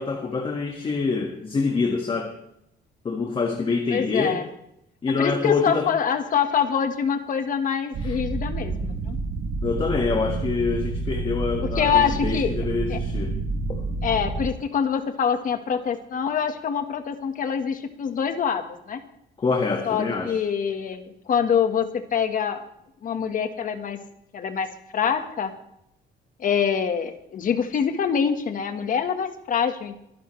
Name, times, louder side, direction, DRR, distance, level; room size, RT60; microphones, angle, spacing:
voice 1, 0.0-2.3 3.1-4.4 5.0-5.9 8.0-8.2 9.6-13.3 13.7-13.8 19.4-20.4, left 4 dB, 30° left, 2 dB, 1.7 m, -26 dB
voice 2, 3.9-4.5 5.2-9.2 11.7-12.5 12.9-13.0 14.0-19.0 19.8-22.6 23.0-24.0 24.3-24.7 24.9-25.5 26.4-29.9, left 7 dB, 45° left, 8 dB, 1.4 m, -25 dB
sound 1, 7.9-14.5, right 3 dB, 80° right, 2.9 m, -29 dB
24.0 x 11.0 x 3.2 m, 0.78 s
cardioid pair, 155°, 18 cm